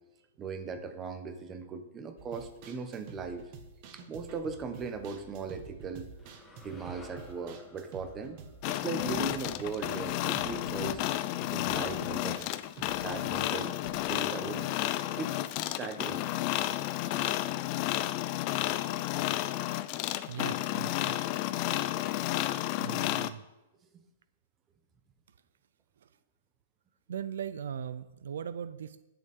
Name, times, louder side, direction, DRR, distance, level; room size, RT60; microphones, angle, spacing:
voice 1, 0.4-3.4 3.9-6.1 6.6-8.4 8.7-11.0 11.5-12.5 12.9-13.7 14.1-14.7 15.1-15.3 15.8-16.2 23.9-24.0, right 5 dB, 20° right, 7 dB, 1.2 m, -38 dB
sound 1, 2.2-15.4 15.7-15.8 16.1-16.2, right 5 dB, 40° right, 1.6 m, -49 dB
sound 2, 6.2-10.4, left 2 dB, 10° left, 1.3 m, -56 dB
sound 3, 8.6-23.3, left 15 dB, 35° left, 0.5 m, -32 dB
voice 2, 20.3-21.2 22.8-23.4 26.0-26.1 27.1-29.0, right 8 dB, 80° right, 14 dB, 0.5 m, -39 dB
20.0 x 6.9 x 3.7 m, 1.0 s
hypercardioid pair, 150°, 0 cm